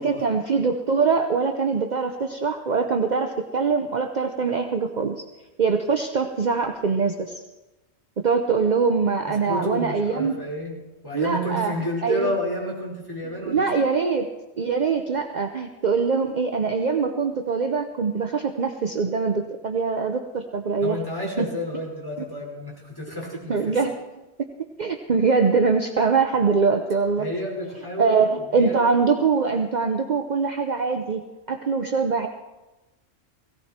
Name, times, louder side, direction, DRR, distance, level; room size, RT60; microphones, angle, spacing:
voice 1, 0.0-5.2 5.6-7.4 8.2-10.4 11.1-11.7 12.0-12.3 13.2-14.3 14.6-21.0 21.4-21.5 23.5-23.9 24.8-27.3 28.0-31.2 31.5-32.3, right 5 dB, 45° right, 5 dB, 0.9 m, -23 dB
voice 2, 9.4-10.7 11.0-13.9 20.8-23.5 27.2-28.2 28.5-28.7, left 1 dB, 20° left, -4 dB, 5.0 m, -30 dB
17.5 x 17.0 x 4.4 m, 1.1 s
omnidirectional pair, 1.1 m